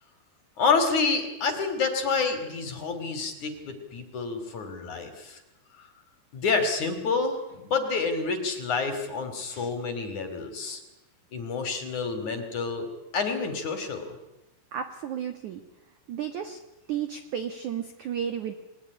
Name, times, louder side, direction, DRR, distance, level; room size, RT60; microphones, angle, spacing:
voice 1, 0.6-5.4 5.8-5.9 6.3-10.8 11.3-12.9 13.1-14.1, left 4 dB, 45° left, 8 dB, 3.5 m, -28 dB
voice 2, 14.7-15.6 16.1-16.6 16.9-18.5, right 9 dB, 75° right, 8 dB, 1.7 m, -33 dB
29.0 x 21.0 x 9.7 m, 0.93 s
omnidirectional pair, 5.8 m